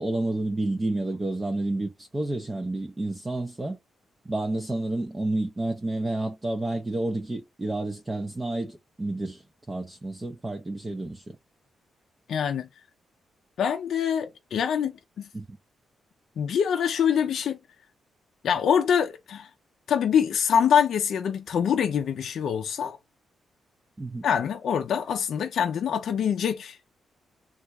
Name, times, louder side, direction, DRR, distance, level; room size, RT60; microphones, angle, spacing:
voice 1, 0.0-3.8 4.3-9.4 9.7-11.4 15.3-15.6 24.0-24.3, right 2 dB, 20° right, 0.5 m, -30 dB
voice 2, 12.3-12.7 13.6-15.3 16.4-17.6 18.4-19.5 19.9-23.0 24.2-26.8, left 8 dB, 65° left, 0.4 m, -25 dB
3.4 x 2.3 x 2.9 m
cardioid pair, 135°, 0 cm